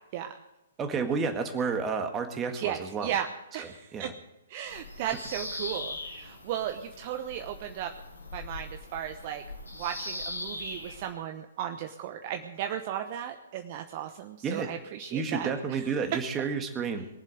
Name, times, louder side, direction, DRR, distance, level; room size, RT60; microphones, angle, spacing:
voice 1, 0.8-3.1 3.9-4.1 14.4-14.7 15.1-17.1, right 5 dB, 20° right, 5 dB, 1.8 m, -30 dB
voice 2, 2.5-3.3 3.5-4.1 4.5-7.9 8.3-9.4 9.7-16.0, right 10 dB, 40° right, 6 dB, 1.0 m, -35 dB
Bird vocalization bird call bird song, 4.7-11.1, left 2 dB, 85° left, 6.0 m, -40 dB
22.0 x 7.6 x 8.0 m, 0.92 s
figure-of-eight pair, 125°, 0 cm